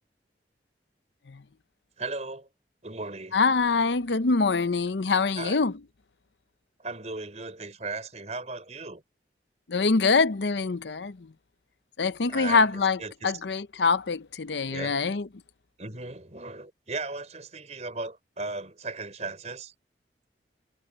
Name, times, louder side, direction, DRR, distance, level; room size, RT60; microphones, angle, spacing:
voice 1, 2.0-2.5 2.8-3.4 5.4-5.6 6.8-9.0 12.3-13.4 14.7-15.0 15.8-19.7, right 3 dB, 40° right, 5.1 m, -37 dB
voice 2, 3.3-5.7 9.7-11.3 12.0-15.3, left 4 dB, 85° left, 0.7 m, -24 dB
head